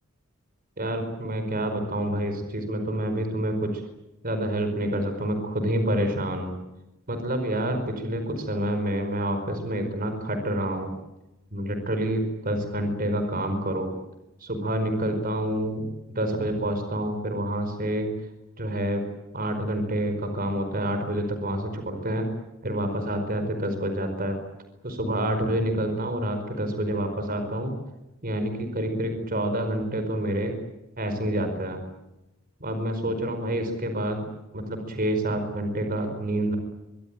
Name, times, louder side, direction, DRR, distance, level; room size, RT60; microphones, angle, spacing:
voice 1, 0.8-3.8 4.2-6.5 7.1-10.9 11.5-13.9 14.4-15.8 16.1-18.1 18.6-19.0 19.3-22.3 22.6-24.4 24.8-27.7 28.2-30.5 31.0-31.8 32.6-34.2 34.5-36.6, right 1 dB, 40° right, 7 dB, 4.9 m, -28 dB
25.0 x 23.5 x 9.1 m, 0.96 s
head